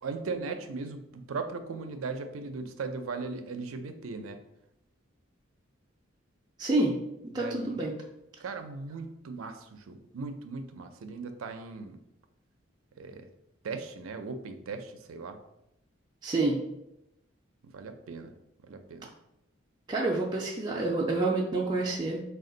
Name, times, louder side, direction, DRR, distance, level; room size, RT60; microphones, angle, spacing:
voice 1, 0.0-4.4 7.3-7.9 8.4-12.0 13.0-13.3 13.6-15.4 17.6-18.3 18.7-19.1, right 4 dB, 85° right, 7 dB, 0.5 m, -38 dB
voice 2, 6.6-7.0 7.3-7.9 16.2-16.6 19.9-22.2, right 2 dB, 20° right, -3 dB, 0.3 m, -28 dB
4.2 x 2.3 x 3.8 m, 0.84 s
head